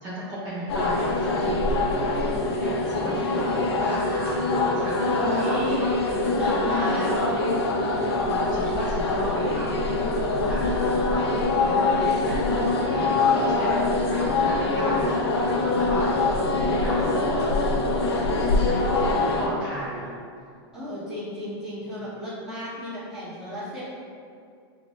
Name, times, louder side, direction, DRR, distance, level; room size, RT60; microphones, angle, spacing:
voice 1, 0.0-2.2 2.6-5.9 6.2-7.2 8.2-13.8 14.1-20.1, right 1 dB, 30° right, -9 dB, 0.7 m, -34 dB
sound 1, 0.7-19.5, left 2 dB, 85° left, 0.5 m, -24 dB
voice 2, 5.0-5.8 6.3-7.1 20.7-23.8, left 1 dB, 5° right, -12 dB, 1.1 m, -32 dB
5.7 x 2.0 x 2.5 m, 2.4 s
supercardioid pair, 150°, 13 cm